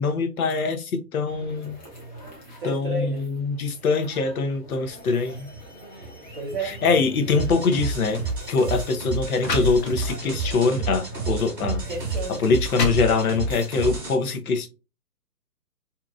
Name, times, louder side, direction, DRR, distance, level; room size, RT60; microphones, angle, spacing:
voice 1, 0.0-1.8 2.6-5.5 6.6-8.2 8.5-11.8 12.4-14.7, left 4 dB, 65° left, 0.7 m, -23 dB
sound 1, 1.3-14.0, equal, 30° left, 0.8 m, -43 dB
voice 2, 2.3-3.3 6.3-6.8 11.8-12.5, right 2 dB, 30° right, 0.6 m, -32 dB
sound 2, 7.3-14.1, right 4 dB, 5° right, 0.9 m, -30 dB
sound 3, 8.3-8.4 9.0-9.1 9.4-10.3 10.9-11.0 11.8-11.9 12.4-13.6, left 2 dB, 85° left, 1.0 m, -29 dB
2.8 x 2.4 x 2.3 m
hypercardioid pair, 155°, 48 cm